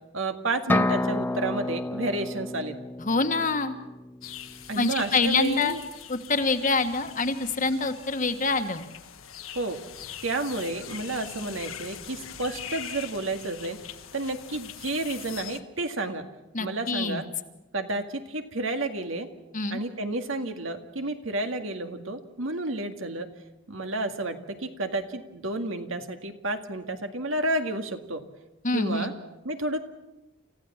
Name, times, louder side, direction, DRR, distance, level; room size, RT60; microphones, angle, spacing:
voice 1, 0.1-2.8 4.7-5.8 9.6-9.8 10.2-13.8 14.1-16.2 16.6-17.3 17.7-19.3 19.7-23.3 23.7-28.2 28.7-29.1 29.4-29.8, right 2 dB, 75° right, 6 dB, 1.9 m, -31 dB
sound 1, 0.7-4.4, left 1 dB, 10° left, 0.7 m, -29 dB
voice 2, 3.0-3.7 4.7-5.7 6.1-8.9 16.5-17.2 19.5-19.8 28.6-29.1, left 3 dB, 40° left, 7 dB, 1.4 m, -26 dB
sound 2, 4.2-15.6, left 9 dB, 85° left, 1.5 m, -42 dB
29.0 x 15.0 x 7.3 m, 1.0 s
head